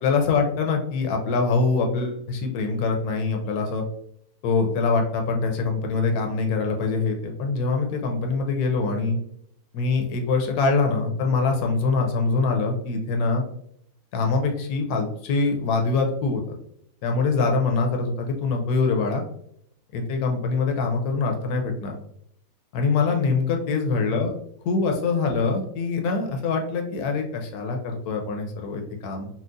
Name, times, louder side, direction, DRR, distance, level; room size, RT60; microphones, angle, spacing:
voice 1, 0.0-3.8 4.4-9.2 9.7-13.4 14.1-16.6 17.0-19.2 19.9-21.9 22.7-24.3 24.6-29.3, left 4 dB, 75° left, 3 dB, 1.2 m, -24 dB
4.4 x 2.0 x 2.5 m, 0.71 s
omnidirectional pair, 1.7 m